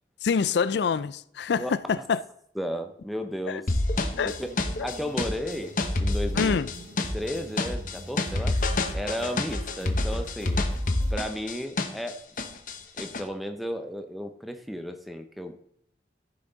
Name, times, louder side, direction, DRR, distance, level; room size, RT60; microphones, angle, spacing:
voice 1, 0.2-2.2 3.5-3.6 4.2-4.4 4.8-4.9 6.4-6.7, left 6 dB, 70° left, 0.4 m, -26 dB
voice 2, 2.6-3.7 4.2-4.5 4.8-6.6 7.1-8.6 8.9-10.6 11.1-12.3 12.9-15.6, equal, ahead, 0.7 m, -34 dB
sound 1, 3.7-12.1 12.4-13.2, left 2 dB, 45° left, 0.9 m, -27 dB
sound 2, 3.9-11.1, equal, 70° right, 2.6 m, -37 dB
14.0 x 5.9 x 4.0 m
head